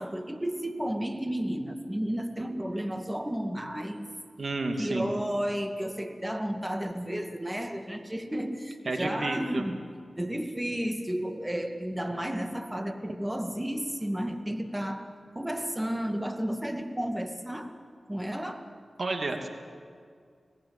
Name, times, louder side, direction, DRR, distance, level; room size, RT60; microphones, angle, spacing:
voice 1, 0.0-4.1 4.8-9.8 10.2-15.1 15.3-17.7 18.1-18.7, equal, 15° right, 6 dB, 2.1 m, -32 dB
voice 2, 4.4-5.1 8.9-9.7 19.0-19.5, right 2 dB, 60° right, 5 dB, 2.5 m, -31 dB
26.0 x 17.5 x 8.4 m, 2.2 s
cardioid pair, 55°, 0 cm